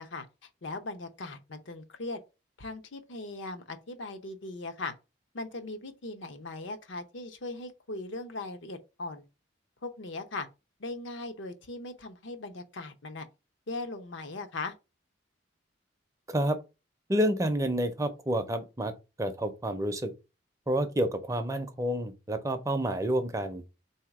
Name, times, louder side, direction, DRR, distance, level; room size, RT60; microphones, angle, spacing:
voice 1, 0.0-2.2 2.6-4.9 5.3-9.2 9.8-10.5 10.8-13.3 13.7-14.7, left 2 dB, 80° left, 0.7 m, -39 dB
voice 2, 17.1-18.9 19.2-20.1 20.7-23.6, right 1 dB, 15° right, 0.5 m, -29 dB
3.9 x 2.8 x 4.7 m
head